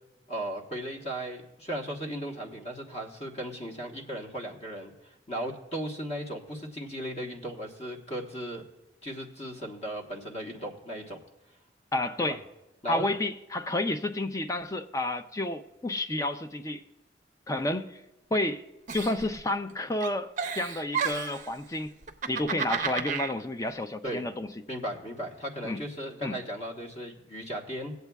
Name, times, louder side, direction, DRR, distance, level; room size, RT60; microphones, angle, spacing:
voice 1, 0.3-8.6 9.0-11.2 12.2-12.4 12.8-13.1 24.0-24.3 24.7-27.9, equal, 35° left, 1.2 m, -36 dB
voice 2, 11.9-12.4 12.9-16.8 17.5-18.0 18.3-18.6 18.9-21.9 22.3-24.5 25.6-25.8 26.2-26.4, left 1 dB, 15° left, 0.5 m, -30 dB
Giggle, 18.9-19.7 20.0-21.5 22.0-23.3, right 6 dB, 45° right, 0.5 m, -32 dB
19.0 x 8.1 x 2.3 m
head